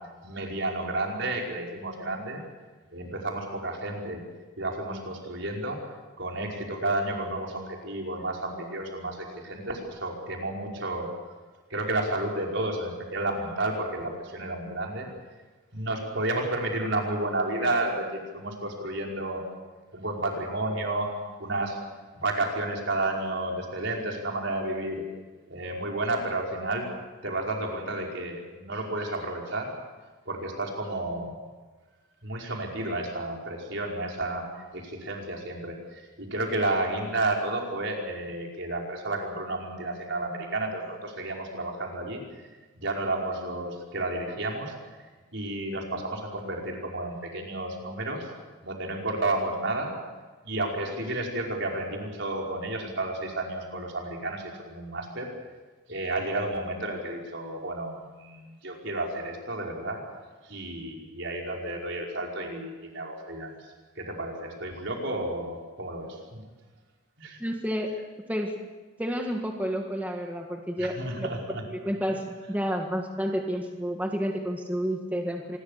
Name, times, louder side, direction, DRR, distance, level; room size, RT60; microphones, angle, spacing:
voice 1, 0.2-2.4 2.9-4.2 4.6-5.8 6.2-11.1 11.7-15.1 15.7-19.4 19.9-21.1 21.4-21.8 22.1-25.0 25.5-26.8 27.2-29.7 30.3-31.4 32.2-34.4 34.7-42.2 42.8-44.7 45.3-48.3 48.6-49.9 50.5-55.3 55.9-60.0 60.4-63.6 64.0-66.4 67.2-67.4 70.8-71.6, right 2 dB, 60° right, 0 dB, 5.3 m, -31 dB
voice 2, 67.4-67.9 68.3-68.5 69.0-75.6, equal, 10° right, 2 dB, 1.7 m, -30 dB
26.0 x 21.0 x 6.7 m, 1.3 s
head